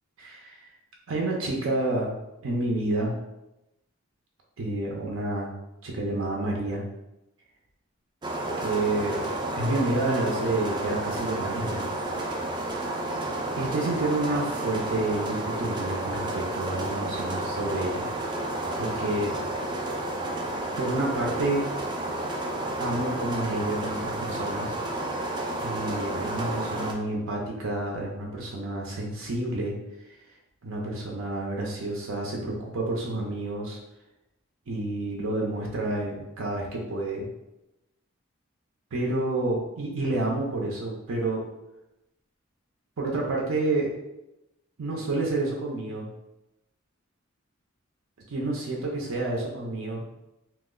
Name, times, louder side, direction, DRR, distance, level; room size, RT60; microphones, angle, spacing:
voice 1, 0.2-0.6 1.1-2.1 2.4-3.1 4.6-5.5 5.8-6.8 8.6-9.2 9.6-11.9 13.6-18.1 18.8-19.3 20.8-21.6 22.8-24.8 25.6-29.8 30.6-33.8 34.7-37.3 38.9-41.4 43.0-43.9 44.8-46.1 48.3-50.0, right 2 dB, 75° right, -2 dB, 0.6 m, -29 dB
sound 1, 8.2-26.9, right 1 dB, 20° right, 0.3 m, -31 dB
2.9 x 2.1 x 3.7 m, 0.92 s
head